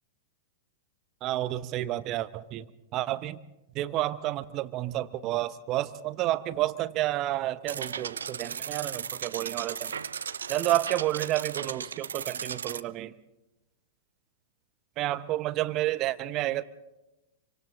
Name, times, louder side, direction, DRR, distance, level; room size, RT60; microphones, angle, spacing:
voice 1, 1.2-3.4 3.7-10.0 10.5-13.1 15.0-16.6, right 15 dB, 35° right, 16 dB, 0.8 m, -30 dB
sound 1, 7.7-12.8, right 7 dB, 70° right, 0.6 m, -36 dB
27.5 x 25.0 x 3.8 m, 1.0 s
figure-of-eight pair, 100°, 0 cm